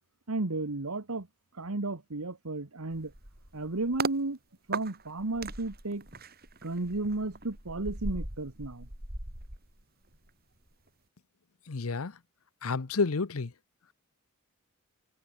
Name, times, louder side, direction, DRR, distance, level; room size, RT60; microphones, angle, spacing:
voice 1, 0.3-1.3 1.6-3.1 3.5-4.4 4.7-6.1 6.6-8.9, right 2 dB, 85° right, 1.5 m, -33 dB
sound 1, 2.9-4.2 4.7-10.3 10.6-10.9, right 3 dB, 45° right, 6.0 m, -39 dB
voice 2, 11.7-12.2 12.6-13.5, left 4 dB, 80° left, 0.8 m, -30 dB
head